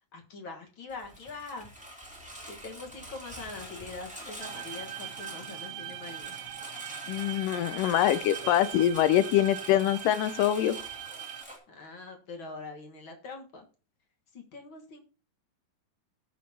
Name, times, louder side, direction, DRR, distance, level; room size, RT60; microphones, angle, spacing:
voice 1, 0.1-1.7 2.5-6.3 11.7-13.7 14.3-15.0, left 3 dB, 50° left, 3 dB, 1.7 m, -43 dB
Engine, 0.9-11.6, right 1 dB, 5° right, 1.9 m, -45 dB
sound 1, 4.4-11.4, right 14 dB, 85° right, 2.4 m, -41 dB
voice 2, 7.1-10.8, left 12 dB, 80° left, 13 dB, 2.1 m, -24 dB
18.5 x 6.4 x 2.8 m, 0.36 s
omnidirectional pair, 4.0 m